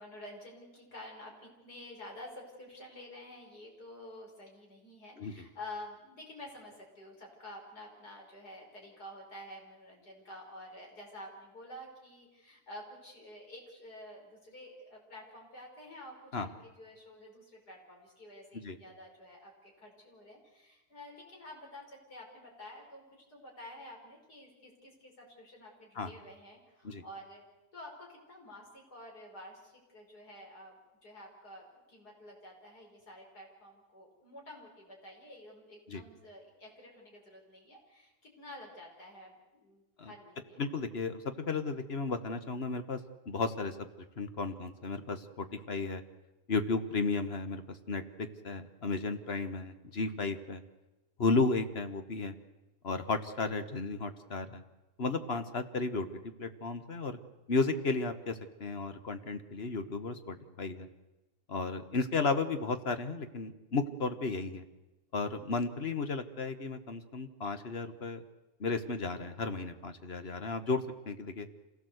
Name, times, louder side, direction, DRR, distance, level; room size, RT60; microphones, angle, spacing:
voice 1, 0.0-23.0 23.3-27.4 27.7-30.8 31.0-40.6, left 1 dB, 70° left, 0 dB, 5.8 m, -50 dB
voice 2, 40.6-43.0 43.3-43.8 44.2-46.0 46.5-50.6 51.2-52.3 52.8-54.6 55.0-56.1 56.4-57.2 57.5-60.9 61.5-64.6 65.1-68.2 68.6-71.5, left 3 dB, 40° left, 9 dB, 1.4 m, -34 dB
26.5 x 17.0 x 8.0 m, 1.0 s
omnidirectional pair, 1.7 m